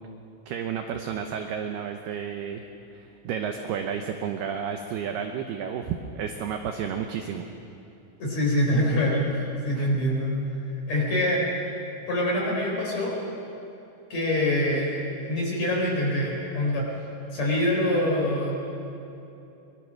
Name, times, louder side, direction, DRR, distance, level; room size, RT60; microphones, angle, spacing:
voice 1, 0.5-2.6 2.9-7.5 9.7-9.9, right 7 dB, 80° right, 5 dB, 2.3 m, -31 dB
voice 2, 8.2-10.3 10.9-11.4 12.1-13.2 14.1-15.0 15.2-16.9 17.3-18.5, left 1 dB, 35° left, -2 dB, 5.0 m, -25 dB
24.5 x 22.0 x 6.5 m, 2.8 s
omnidirectional pair, 5.8 m